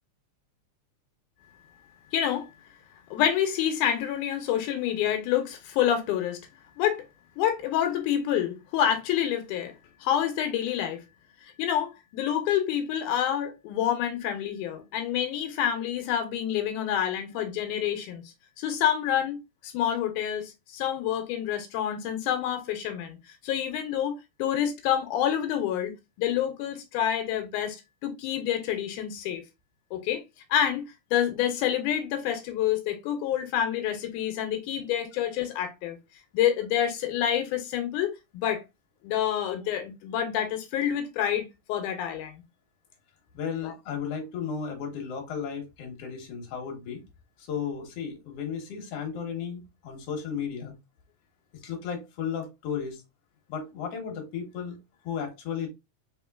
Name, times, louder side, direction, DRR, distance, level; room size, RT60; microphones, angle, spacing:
voice 1, 2.1-2.5 3.1-6.4 6.8-7.0 7.4-9.7 10.0-11.0 11.4-18.2 18.6-23.2 23.4-25.9 26.2-27.8 28.0-29.4 29.9-30.2 30.5-30.8 31.1-36.0 36.3-38.6 39.0-42.3 43.6-43.7, left 10 dB, 85° left, 2.1 m, -28 dB
voice 2, 43.3-47.0 47.4-50.7 51.6-53.0 53.5-54.8 55.0-55.7, left 7 dB, 60° left, 2.0 m, -34 dB
4.5 x 3.6 x 2.3 m
omnidirectional pair, 3.5 m